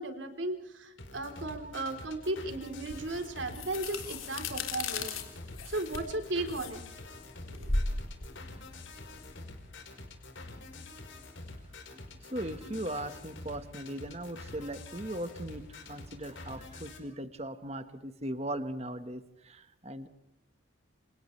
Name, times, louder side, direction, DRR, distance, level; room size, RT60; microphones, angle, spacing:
voice 1, 0.0-5.2 5.7-6.8 7.4-7.8, right 2 dB, 65° right, 6 dB, 3.8 m, -36 dB
sound 1, 1.0-17.0, left 2 dB, 65° left, 4.7 m, -47 dB
sound 2, 2.9-9.7, left 3 dB, 80° left, 3.7 m, -37 dB
voice 2, 12.3-20.1, right 1 dB, 30° right, 9 dB, 1.5 m, -38 dB
29.0 x 29.0 x 3.4 m, 0.86 s
head